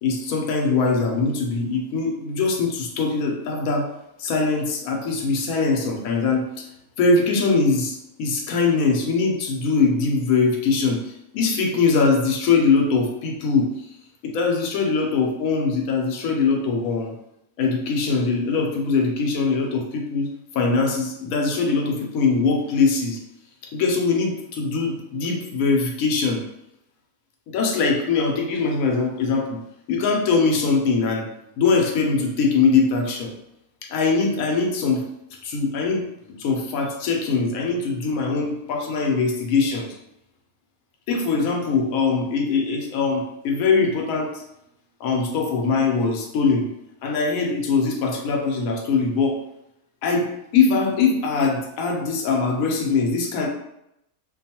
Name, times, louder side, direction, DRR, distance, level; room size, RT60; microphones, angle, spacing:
voice 1, 0.0-3.9 4.2-6.6 7.0-13.7 14.2-17.1 17.6-23.2 23.7-26.4 27.5-29.6 29.9-31.3 31.6-33.3 33.9-35.1 35.4-40.0 41.1-44.3 45.0-46.7 47.0-49.4 50.0-53.5, left 4 dB, 75° left, 1 dB, 1.0 m, -22 dB
2.5 x 2.3 x 2.7 m, 0.81 s
omnidirectional pair, 1.5 m